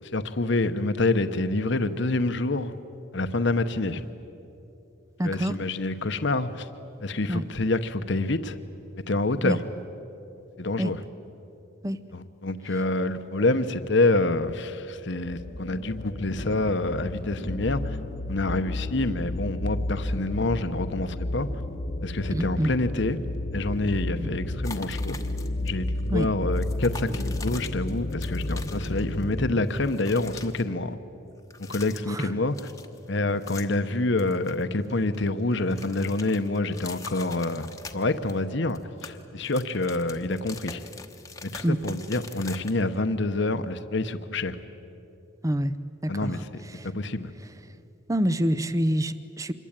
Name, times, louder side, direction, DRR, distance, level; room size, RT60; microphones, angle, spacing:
voice 1, 0.0-2.7 3.1-4.0 5.2-6.7 7.0-8.6 9.1-9.7 10.6-11.0 12.1-18.0 18.3-21.5 22.0-23.2 23.5-25.2 25.6-31.0 31.7-32.7 33.1-40.8 41.4-44.6 46.1-47.3, left 2 dB, 55° left, 10 dB, 1.0 m, -27 dB
voice 2, 5.2-5.6 7.3-7.4 9.4-9.6 10.8-10.9 11.8-12.0 22.3-22.7 24.2-24.3 26.1-26.3 32.1-32.3 41.6-41.8 45.4-45.7 46.0-46.3 46.7-46.9 48.1-49.5, equal, 15° right, 13 dB, 0.6 m, -26 dB
sound 1, 15.2-29.7, left 1 dB, 35° left, 0.7 m, -32 dB
sound 2, 24.6-25.7 25.9-26.1 26.5-29.3 29.6-30.6 31.4-32.3 32.5-33.9 34.2-35.2 35.5-38.4 38.7-43.0, left 4 dB, 15° left, 1.1 m, -43 dB
26.5 x 22.0 x 8.9 m, 2.8 s
head